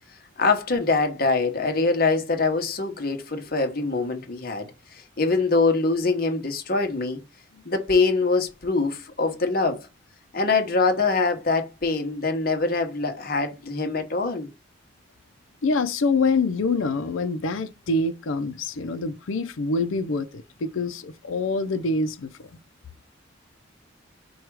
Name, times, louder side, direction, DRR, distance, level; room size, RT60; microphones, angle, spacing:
voice 1, 0.4-7.2 7.6-9.9 10.3-14.5, left 3 dB, 45° left, 1.0 m, -24 dB
voice 2, 15.6-22.3, left 3 dB, 85° left, 0.5 m, -25 dB
4.7 x 2.3 x 4.6 m
head